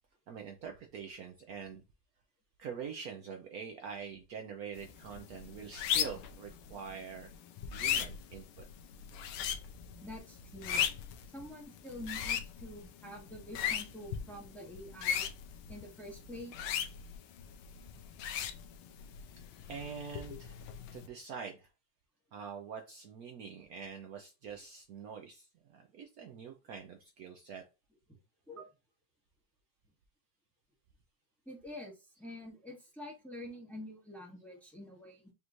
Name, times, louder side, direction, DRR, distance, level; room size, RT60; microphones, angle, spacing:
voice 1, 0.3-1.8 2.6-7.3 7.7-8.7 19.7-20.6 20.9-21.7 22.3-27.6, right 6 dB, 85° right, 3 dB, 0.8 m, -45 dB
sound 1, 4.8-21.1, left 9 dB, 80° left, 1.5 m, -38 dB
voice 2, 10.0-10.8 11.3-15.3 15.7-16.7 28.5-28.7 31.4-35.3, left 1 dB, ahead, -1 dB, 1.0 m, -47 dB
5.4 x 3.1 x 2.5 m, 0.28 s
omnidirectional pair, 2.4 m